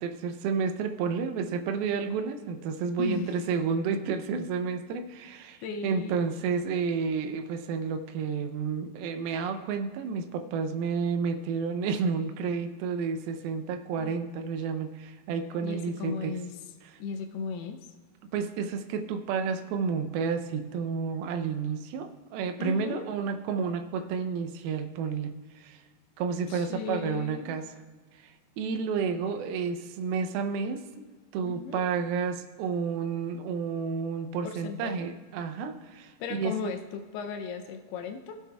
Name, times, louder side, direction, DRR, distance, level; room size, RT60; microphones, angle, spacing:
voice 1, 0.0-16.4 16.8-17.0 18.3-25.8 26.2-27.7 28.2-31.1 31.3-36.7, right 5 dB, 80° right, 7 dB, 2.4 m, -31 dB
voice 2, 3.0-3.4 5.6-6.2 14.0-14.2 15.6-16.5 17.0-17.9 22.6-23.1 26.5-27.6 31.5-31.9 34.4-35.1 36.2-38.4, left 5 dB, 80° left, 6 dB, 2.6 m, -36 dB
16.0 x 8.3 x 2.3 m, 1.4 s
omnidirectional pair, 4.7 m